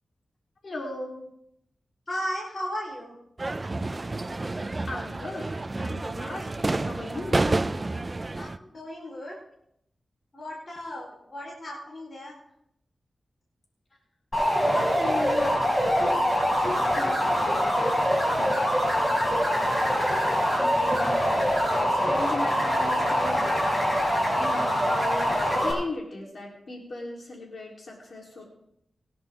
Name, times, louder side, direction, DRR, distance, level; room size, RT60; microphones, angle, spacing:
voice 1, 0.6-1.3 4.9-7.4 14.6-15.7 16.1-17.9 19.0-20.0 20.6-23.7 24.4-28.4, left 2 dB, 60° left, -2 dB, 3.8 m, -38 dB
voice 2, 2.1-3.2 8.3-9.4 10.3-12.4, equal, 40° left, -4 dB, 4.5 m, -35 dB
sound 1, 3.4-8.6, right 2 dB, 30° right, 0.7 m, -29 dB
sound 2, 14.3-25.7, equal, 20° left, 6.4 m, -24 dB
20.5 x 11.0 x 3.7 m, 0.75 s
wide cardioid pair, 105°, 0 cm